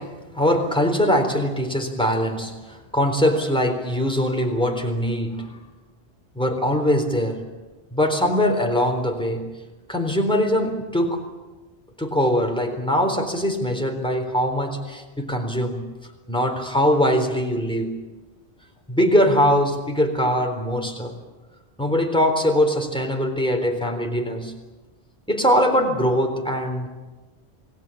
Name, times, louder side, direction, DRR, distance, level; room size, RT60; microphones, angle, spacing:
voice 1, 0.0-5.5 6.4-7.4 7.9-9.5 9.9-11.3 12.0-15.9 16.3-18.0 18.9-21.2 21.8-24.5 25.3-26.9, equal, 5° left, 3 dB, 3.9 m, -22 dB
28.0 x 19.5 x 8.7 m, 1.2 s
omnidirectional pair, 1.1 m